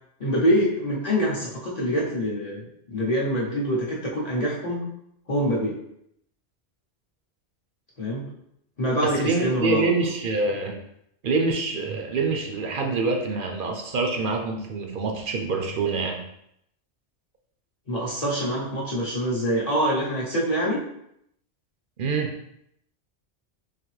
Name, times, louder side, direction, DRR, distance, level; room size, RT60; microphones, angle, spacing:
voice 1, 0.2-4.9 5.3-5.8 8.0-8.3 8.8-9.9 17.9-20.8, equal, 40° left, -6 dB, 0.8 m, -25 dB
voice 2, 9.0-10.8 11.2-16.2 22.0-22.3, right 3 dB, 60° right, 2 dB, 0.7 m, -26 dB
4.0 x 2.8 x 3.1 m, 0.76 s
omnidirectional pair, 1.2 m